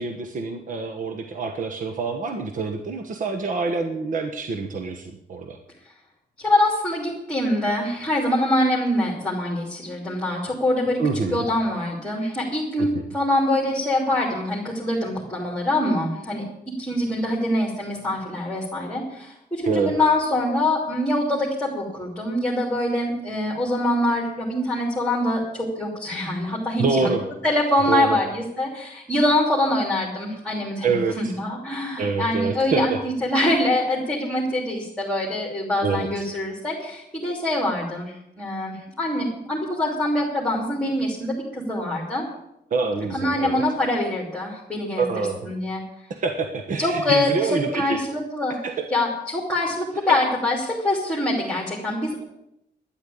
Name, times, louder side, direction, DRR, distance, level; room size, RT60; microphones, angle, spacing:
voice 1, 0.0-5.6 11.0-11.5 12.8-13.1 19.6-20.0 26.8-27.2 27.9-28.2 30.8-31.3 32.0-33.0 35.8-36.2 42.7-43.6 45.0-45.4 46.2-48.0 48.6-48.9, right 4 dB, 50° right, 6 dB, 1.3 m, -26 dB
voice 2, 6.4-11.0 11.3-27.1 27.4-42.3 43.1-45.8 46.8-48.6 48.9-52.2, left 1 dB, 5° left, -3 dB, 3.0 m, -24 dB
12.0 x 10.5 x 8.6 m, 0.81 s
wide cardioid pair, 170°, 17 cm